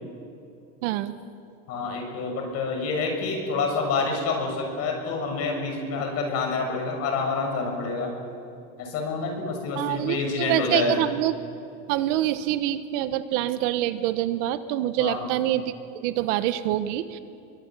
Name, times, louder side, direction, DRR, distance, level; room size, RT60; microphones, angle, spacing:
voice 1, 0.8-1.2 9.7-11.3 11.9-17.2, right 13 dB, 70° right, 11 dB, 1.5 m, -26 dB
voice 2, 1.7-8.2 8.8-10.9 15.0-15.2, left 4 dB, 40° left, 2 dB, 6.9 m, -27 dB
26.5 x 23.5 x 9.1 m, 2.7 s
cardioid pair, 170°, 38 cm